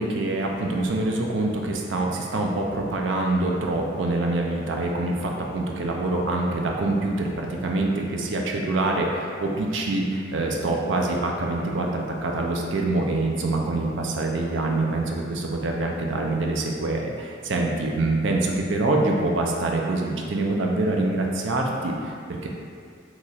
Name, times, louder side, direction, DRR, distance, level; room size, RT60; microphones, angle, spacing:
voice 1, 0.0-22.5, right 2 dB, 75° right, 0 dB, 0.4 m, -25 dB
3.0 x 2.4 x 3.9 m, 2.2 s
head